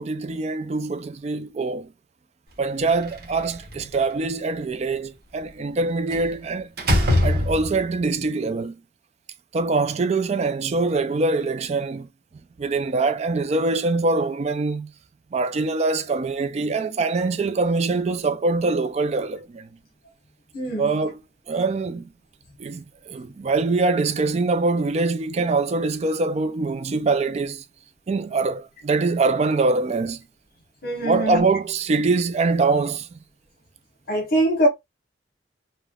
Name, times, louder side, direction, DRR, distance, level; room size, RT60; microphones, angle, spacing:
voice 1, 0.0-1.9 2.6-6.7 7.2-8.8 9.5-12.1 12.6-14.9 15.3-19.7 20.8-21.2 21.5-22.1 22.6-27.6 28.1-30.2 31.0-33.2, right 3 dB, 35° right, 0.3 m, -23 dB
Slam, 2.9-4.0 6.1-6.3 6.8-8.0, left 1 dB, 55° right, 0.9 m, -22 dB
voice 2, 20.5-20.9 30.8-31.4 34.1-34.7, right 1 dB, 55° left, 1.0 m, -22 dB
3.2 x 2.1 x 2.3 m
head